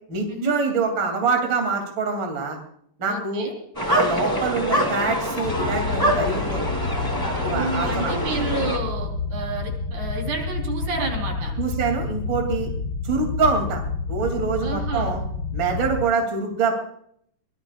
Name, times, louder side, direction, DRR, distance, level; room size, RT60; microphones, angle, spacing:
voice 1, 0.1-2.6 3.0-3.5 3.9-6.6 7.4-8.2 11.6-12.7 13.0-13.8 14.1-15.2 15.5-16.7, right 4 dB, 40° right, 3 dB, 3.4 m, -25 dB
voice 2, 3.1-3.5 7.5-11.5 14.6-15.1, right 3 dB, 75° right, 1 dB, 5.3 m, -30 dB
sound 1, 3.8-8.8, equal, 10° left, 2.6 m, -25 dB
sound 2, 5.4-16.0, left 4 dB, 60° left, 0.9 m, -29 dB
23.5 x 19.0 x 2.4 m, 0.66 s
omnidirectional pair, 3.4 m